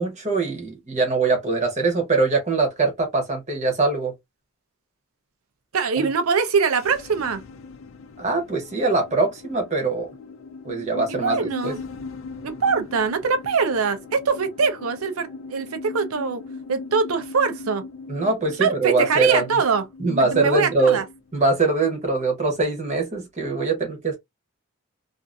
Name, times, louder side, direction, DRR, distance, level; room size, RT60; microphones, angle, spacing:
voice 1, 0.0-4.1 6.0-6.1 8.2-10.1 10.6-11.8 18.1-19.5 20.0-21.0 21.3-24.2, right 3 dB, 35° right, 0.8 m, -22 dB
voice 2, 5.7-7.4 11.2-11.8 12.4-16.4 16.7-17.9 18.6-21.0, right 5 dB, 90° right, 0.6 m, -23 dB
sound 1, 6.7-22.2, left 4 dB, 70° left, 0.4 m, -40 dB
2.5 x 2.5 x 2.3 m
head